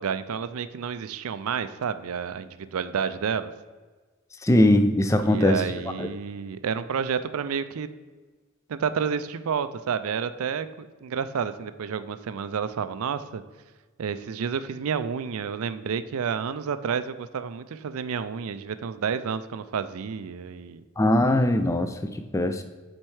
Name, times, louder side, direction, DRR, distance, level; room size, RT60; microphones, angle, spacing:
voice 1, 0.0-3.5 5.2-7.9 8.7-13.4 14.0-20.8, right 6 dB, 70° right, 13 dB, 0.4 m, -30 dB
voice 2, 4.4-5.6 6.0-6.1 21.0-22.6, left 1 dB, 15° left, 8 dB, 0.3 m, -21 dB
7.5 x 4.4 x 4.7 m, 1.4 s
head